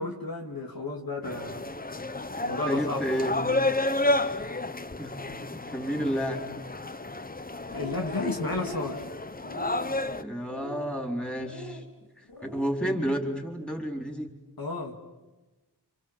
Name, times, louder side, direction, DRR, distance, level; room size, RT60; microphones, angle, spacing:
voice 1, 0.0-1.6 2.4-3.0 7.7-9.0 14.6-15.0, left 2 dB, 60° left, 2 dB, 2.5 m, -32 dB
sound 1, 1.2-10.2, left 2 dB, 20° left, 0.9 m, -31 dB
voice 2, 2.6-3.3 5.0-5.2 5.5-6.4 10.1-11.8 12.4-14.3, equal, ahead, 3 dB, 4.2 m, -30 dB
sound 2, 7.6-8.2 8.5-9.0 9.4-10.0 10.5-11.0 11.4-11.8 12.3-12.7, left 1 dB, 90° left, 3.4 m, -41 dB
29.5 x 26.5 x 7.5 m, 1.1 s
wide cardioid pair, 55°, 40 cm